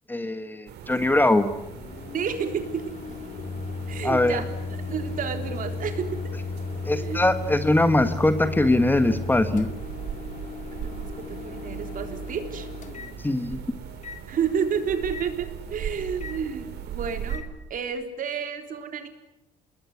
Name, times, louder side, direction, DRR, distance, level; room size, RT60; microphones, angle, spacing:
voice 1, 0.1-1.5 4.0-4.4 6.8-9.7 13.2-13.8, left 1 dB, 10° left, 10 dB, 1.5 m, -22 dB
sound 1, 0.7-17.4, right 9 dB, 75° right, 4.2 m, -39 dB
Microwave oven, 1.0-17.5, left 4 dB, 45° left, 2.1 m, -36 dB
voice 2, 2.1-3.1 3.9-4.5 4.9-6.3 6.9-7.2 10.7-12.7 14.3-19.1, right 7 dB, 55° right, 6 dB, 3.6 m, -30 dB
28.5 x 20.5 x 9.7 m, 0.91 s
cardioid pair, 110°, 17 cm